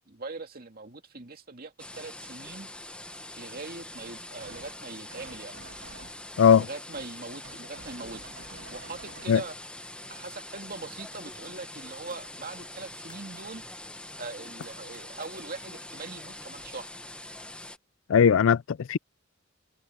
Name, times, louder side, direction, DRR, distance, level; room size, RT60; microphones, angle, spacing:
voice 1, 0.1-2.7 3.4-5.6 6.6-8.2 8.7-9.6 10.1-13.6 14.2-17.0, right 3 dB, 45° right, 2.3 m, -41 dB
sound 1, 1.8-17.8, left 1 dB, 5° left, 1.0 m, -44 dB
sound 2, 4.4-4.8 5.1-6.7 6.9-7.1 7.4-9.5, right 4 dB, 75° right, 2.4 m, -49 dB
sound 3, 11.3-11.5 11.9-12.4 12.7-13.4 13.9-16.9 17.1-18.3, left 4 dB, 20° left, 7.1 m, -63 dB
voice 2, 18.1-19.0, left 7 dB, 70° left, 0.4 m, -19 dB
head